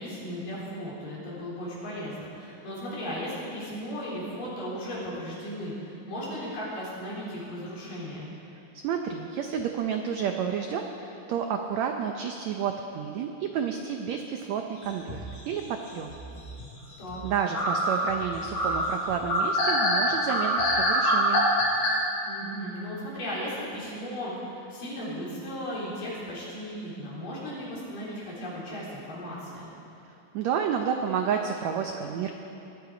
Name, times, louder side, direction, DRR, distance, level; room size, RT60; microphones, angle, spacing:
voice 1, 0.0-8.3 17.0-17.2 22.2-29.7, equal, 70° left, -7 dB, 5.4 m, -36 dB
voice 2, 8.5-16.2 17.2-21.5 30.3-32.3, right 7 dB, 90° right, 4 dB, 1.5 m, -30 dB
sound 1, 14.9-15.6 16.1-16.7 17.1-17.2 17.5-21.9, equal, 85° left, 5.6 m, -25 dB
20.0 x 11.5 x 5.1 m, 2.8 s
omnidirectional pair, 4.1 m